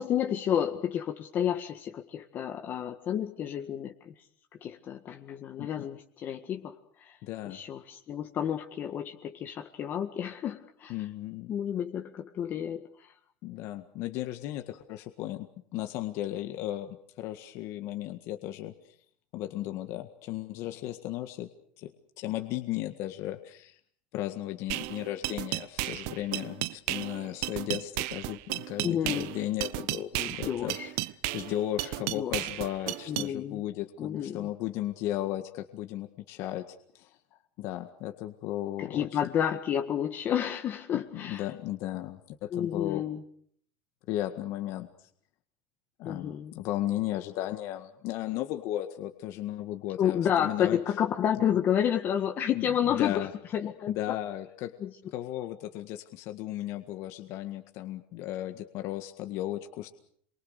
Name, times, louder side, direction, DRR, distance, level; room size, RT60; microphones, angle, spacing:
voice 1, 0.0-3.9 4.6-7.2 7.4-10.9 11.5-12.8 28.8-29.3 30.1-30.9 32.1-32.3 33.1-33.6 34.0-34.4 38.8-41.4 42.5-43.2 46.0-46.5 50.0-53.3 53.5-53.9 54.8-54.9, left 9 dB, 35° left, 4 dB, 1.8 m, -30 dB
voice 2, 7.2-7.6 10.9-11.5 13.4-15.5 15.7-18.7 19.3-21.5 21.8-23.8 24.1-30.8 31.3-37.2 37.6-39.2 40.9-43.0 44.1-44.9 46.0-50.8 51.4-51.5 52.5-53.3 53.9-54.7 55.1-59.9, left 14 dB, 55° left, 6 dB, 1.8 m, -35 dB
sound 1, 24.7-33.3, right 19 dB, 65° right, 1.0 m, -34 dB
27.5 x 23.5 x 6.7 m, 0.65 s
supercardioid pair, 140°, 6 cm